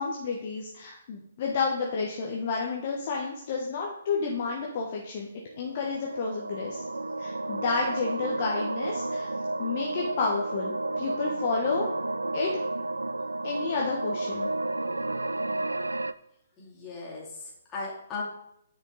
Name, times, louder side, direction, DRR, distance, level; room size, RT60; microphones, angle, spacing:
voice 1, 0.0-5.3 5.6-6.8 7.2-9.3 9.6-11.9 12.3-12.5 13.4-14.5, left 4 dB, 40° left, -1 dB, 1.2 m, -30 dB
sound 1, 5.4-16.1, right 2 dB, 75° right, 0.3 m, -32 dB
voice 2, 16.6-18.2, left 4 dB, 20° left, -5 dB, 2.6 m, -38 dB
9.2 x 5.2 x 3.8 m, 0.75 s
figure-of-eight pair, 130°, 0 cm